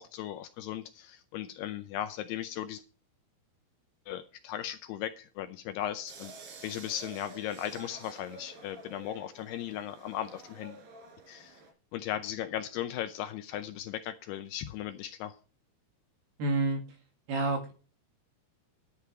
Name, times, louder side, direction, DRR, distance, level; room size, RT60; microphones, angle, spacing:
voice 1, 0.0-2.8 4.1-10.8 11.3-11.6 11.9-15.4, left 11 dB, 80° left, 2.5 m, -37 dB
sound 1, 6.1-11.7, right 3 dB, 85° right, 5.1 m, -50 dB
voice 2, 16.4-16.8 17.3-17.7, right 2 dB, 65° right, 3.8 m, -28 dB
11.5 x 8.4 x 4.5 m
omnidirectional pair, 5.2 m